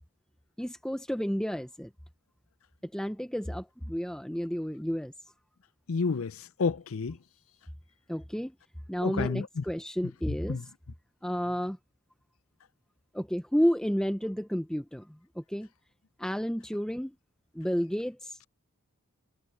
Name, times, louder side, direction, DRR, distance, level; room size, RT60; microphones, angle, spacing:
voice 1, 0.6-1.9 2.8-5.1 8.1-8.5 8.9-10.7 11.2-11.8 13.1-15.7 16.2-17.2 17.5-18.4, equal, 5° left, 0.6 m, -31 dB
voice 2, 5.9-6.3 6.6-7.2 9.0-9.4 10.5-10.6, left 4 dB, 70° left, 0.6 m, -29 dB
head